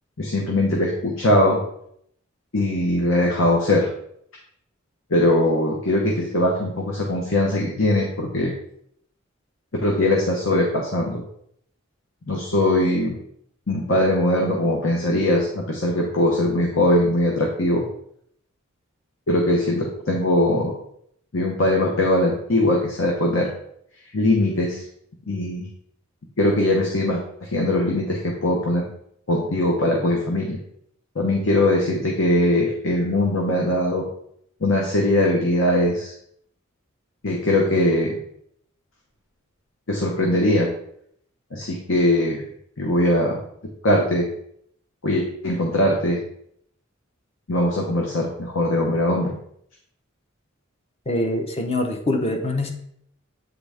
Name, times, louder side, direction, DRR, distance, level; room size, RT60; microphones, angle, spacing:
voice 1, 0.2-1.6 2.5-3.9 5.1-8.5 9.8-11.2 12.3-13.1 13.7-17.8 19.3-20.7 21.3-23.5 24.1-24.8 25.3-25.6 26.4-28.8 29.3-30.6 31.1-34.0 34.6-36.1 37.2-38.1 39.9-40.7 41.5-42.4 42.8-43.4 43.8-44.3 45.0-46.2 47.5-49.4, left 1 dB, 70° left, 0 dB, 1.0 m, -21 dB
voice 2, 51.1-52.7, left 1 dB, 30° left, 4 dB, 0.8 m, -24 dB
8.3 x 3.9 x 3.4 m, 0.70 s
head